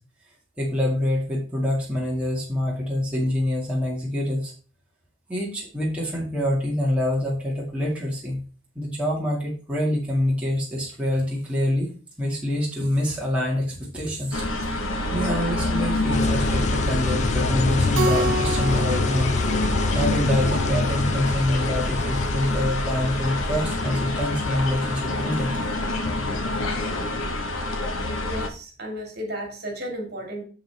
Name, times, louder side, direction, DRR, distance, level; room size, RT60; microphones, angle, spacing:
voice 1, 0.6-4.5 5.3-8.4 8.8-11.9 12.2-14.8 15.1-19.5 19.9-25.5, left 1 dB, 5° right, -4 dB, 2.0 m, -26 dB
sound 1, 14.3-28.5, left 1 dB, 85° left, 1.3 m, -27 dB
sound 2, 16.1-26.2, left 4 dB, 35° left, 0.4 m, -28 dB
Keyboard (musical), 17.9-20.6, right 2 dB, 75° right, 0.8 m, -29 dB
voice 2, 28.2-30.4, equal, 50° right, 3 dB, 2.4 m, -33 dB
7.8 x 7.0 x 3.4 m, 0.38 s
head